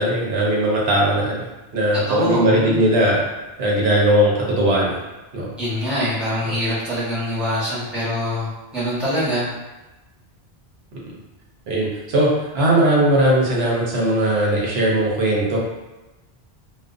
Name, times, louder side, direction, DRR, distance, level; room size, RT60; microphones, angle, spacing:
voice 1, 0.0-1.4 1.7-3.2 3.6-5.0 5.3-5.5 6.4-6.6 11.7-15.6, right 1 dB, 80° right, -4 dB, 0.9 m, -19 dB
voice 2, 2.1-2.9 5.6-9.5, equal, ahead, -12 dB, 1.0 m, -24 dB
2.4 x 2.2 x 2.4 m, 1.1 s
omnidirectional pair, 1.1 m